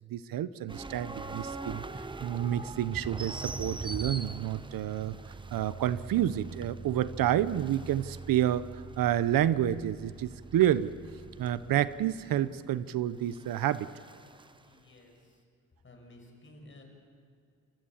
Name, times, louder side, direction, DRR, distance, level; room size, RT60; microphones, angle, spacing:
voice 1, 0.1-5.2 5.5-10.9 11.4-13.9, right 11 dB, 90° right, 16 dB, 0.7 m, -29 dB
sound 1, 0.7-14.5, right 3 dB, 15° right, 0.7 m, -42 dB
voice 2, 14.6-15.4 15.8-16.8, left 1 dB, 35° left, 2 dB, 5.5 m, -54 dB
29.5 x 14.0 x 7.2 m, 2.4 s
cardioid pair, 105°, 33 cm